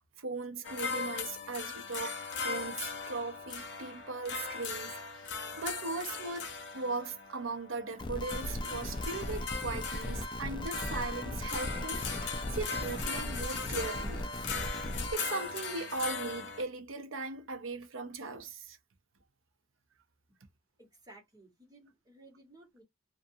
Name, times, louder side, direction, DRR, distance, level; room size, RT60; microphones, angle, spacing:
voice 1, 0.2-14.3 15.1-18.8, right 3 dB, 85° right, 0.7 m, -39 dB
sound 1, 0.6-16.6, left 5 dB, 60° left, 0.7 m, -39 dB
sound 2, 8.0-15.1, left 1 dB, 25° left, 0.3 m, -37 dB
voice 2, 20.8-22.8, right 2 dB, 20° right, 1.2 m, -57 dB
2.5 x 2.3 x 2.6 m
head